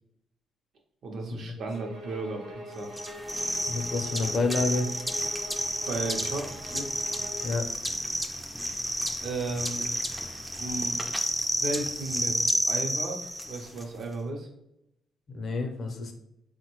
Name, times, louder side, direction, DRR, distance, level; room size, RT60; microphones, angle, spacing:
voice 1, 1.0-2.9 5.9-6.9 9.2-9.9 10.6-11.0 11.6-14.5, right 3 dB, 65° right, 2 dB, 0.6 m, -34 dB
sound 1, 1.7-7.5, equal, 85° right, 0.9 m, -42 dB
sound 2, 2.9-13.8, equal, ahead, 0.3 m, -31 dB
voice 2, 3.7-4.9 7.4-7.7 15.3-16.1, left 3 dB, 50° left, 4 dB, 0.5 m, -29 dB
3.6 x 2.1 x 2.9 m, 0.81 s
cardioid pair, 90°, 0 cm